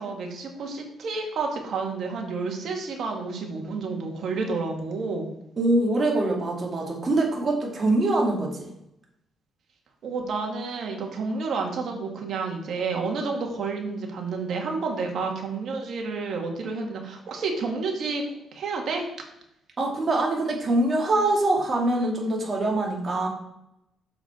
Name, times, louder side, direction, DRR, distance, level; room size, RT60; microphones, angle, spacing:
voice 1, 0.0-5.3 10.0-18.2 18.5-19.1, right 4 dB, 65° right, 2 dB, 2.1 m, -30 dB
voice 2, 5.6-8.7 19.8-23.3, right 2 dB, 40° right, -1 dB, 2.6 m, -24 dB
7.2 x 6.8 x 4.5 m, 0.82 s
cardioid pair, 90°, 0 cm